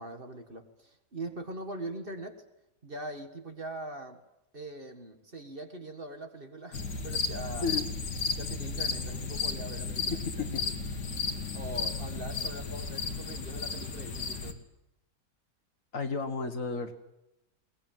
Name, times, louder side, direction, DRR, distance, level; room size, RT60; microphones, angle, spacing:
voice 1, 0.0-2.4 2.8-4.2 4.5-7.7 8.3-10.2 11.5-14.6, right 1 dB, 35° right, 6 dB, 1.9 m, -42 dB
sound 1, 6.7-14.5, left 4 dB, 75° left, 2.5 m, -34 dB
voice 2, 10.1-10.6 15.9-16.9, left 4 dB, 50° left, 8 dB, 2.0 m, -32 dB
22.0 x 19.5 x 9.2 m, 0.88 s
omnidirectional pair, 1.8 m